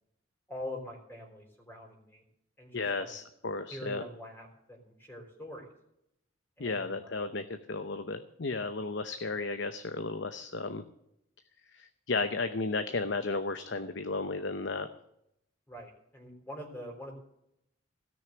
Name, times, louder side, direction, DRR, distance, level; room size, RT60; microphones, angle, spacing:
voice 1, 0.5-2.2 2.6-3.1 3.7-5.7 6.6-7.2 15.7-17.1, left 1 dB, 10° left, 1 dB, 3.9 m, -44 dB
voice 2, 2.7-4.0 6.6-10.8 11.7-14.9, left 3 dB, 60° left, 9 dB, 0.8 m, -34 dB
17.0 x 6.4 x 9.0 m, 0.77 s
head